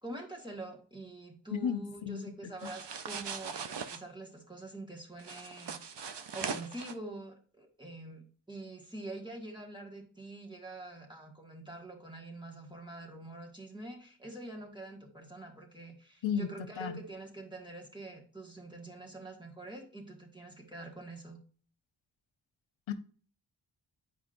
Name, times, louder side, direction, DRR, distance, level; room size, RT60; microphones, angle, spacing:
voice 1, 0.0-5.8 6.3-21.4, right 2 dB, 10° right, 1 dB, 1.7 m, -45 dB
voice 2, 1.5-2.5 16.2-16.5 16.8-17.0 22.9-23.0, left 7 dB, 85° left, 8 dB, 0.8 m, -33 dB
sound 1, 2.6-4.0 5.2-6.9, right 6 dB, 65° right, 0.7 m, -40 dB
9.3 x 5.1 x 2.6 m, 0.43 s
wide cardioid pair, 100°, 45 cm